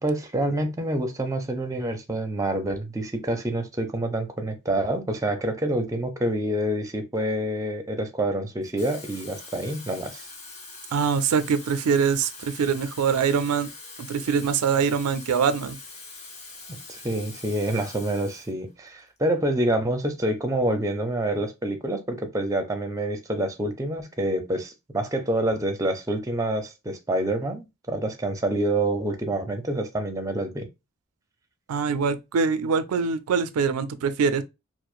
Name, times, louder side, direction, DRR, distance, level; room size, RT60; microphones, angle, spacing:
voice 1, 0.0-10.3 16.9-30.7, right 1 dB, 15° right, 0.5 m, -27 dB
Water tap faucet / Fill (with liquid), 8.6-18.5 18.9-19.2, left 3 dB, 30° left, 0.8 m, -43 dB
voice 2, 10.9-13.7 14.0-15.8 31.7-34.4, right 6 dB, 80° right, 0.4 m, -24 dB
4.7 x 2.0 x 2.4 m
head